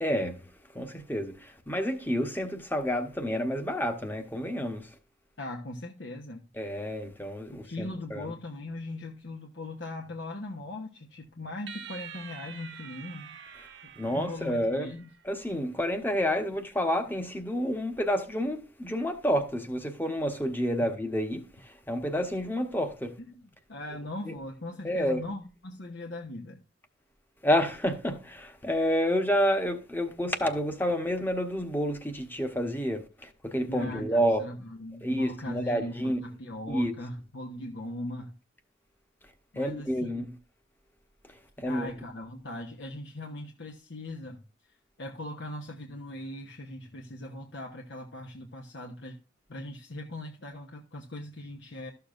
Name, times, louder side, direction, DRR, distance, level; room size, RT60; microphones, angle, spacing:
voice 1, 0.0-0.4 0.7-4.9 6.5-8.3 14.0-14.9 15.2-23.1 24.3-24.4 24.8-25.2 27.4-34.4 35.0-36.2 36.7-36.9 39.6-40.3 41.6-41.9, equal, 10° left, 1.0 m, -29 dB
voice 2, 5.4-6.5 7.5-13.3 14.1-15.1 20.8-20.9 23.2-26.6 33.7-38.4 39.5-40.3 41.6-44.4 45.0-49.2 49.5-51.9, left 1 dB, 70° left, 1.0 m, -40 dB
sound 1, 11.7-15.2, right 7 dB, 70° right, 1.1 m, -46 dB
13.0 x 6.8 x 2.5 m
head